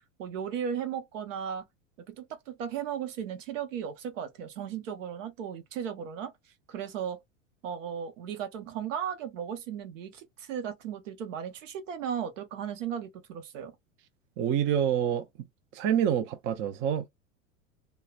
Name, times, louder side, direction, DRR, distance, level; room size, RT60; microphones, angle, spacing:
voice 1, 0.2-1.6 2.1-6.3 6.7-7.2 7.6-13.7, right 8 dB, 70° right, 1.0 m, -36 dB
voice 2, 14.4-15.3 15.7-17.1, right 9 dB, 30° right, 0.5 m, -27 dB
3.0 x 2.1 x 2.3 m
hypercardioid pair, 95°, 39 cm